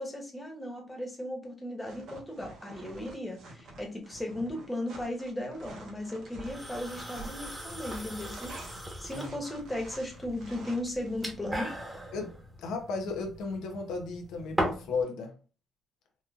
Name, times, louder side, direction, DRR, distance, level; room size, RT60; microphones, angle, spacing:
voice 1, 0.0-8.6 9.0-11.7, left 1 dB, 10° left, 1 dB, 1.1 m, -36 dB
sound 1, 1.9-11.3, right 2 dB, 70° right, 1.2 m, -49 dB
sound 2, 6.4-15.0, equal, 10° right, 1.1 m, -39 dB
voice 2, 12.6-15.3, left 4 dB, 90° left, 3 dB, 0.7 m, -34 dB
4.1 x 2.4 x 2.4 m, 0.35 s
cardioid pair, 90°, 0 cm